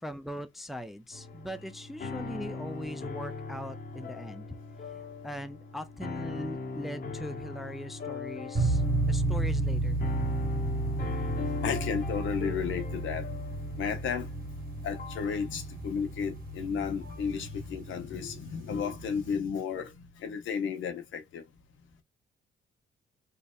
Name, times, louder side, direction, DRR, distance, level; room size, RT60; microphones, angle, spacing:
voice 1, 0.0-4.5 5.2-10.0, equal, ahead, 0.4 m, -40 dB
sound 1, 1.1-17.4, left 4 dB, 45° left, 1.3 m, -41 dB
sound 2, 8.6-19.4, right 2 dB, 45° right, 1.1 m, -32 dB
voice 2, 11.6-13.3 13.8-14.3 14.8-21.5, left 6 dB, 75° left, 1.0 m, -33 dB
3.0 x 2.7 x 2.2 m
cardioid pair, 90°, 20 cm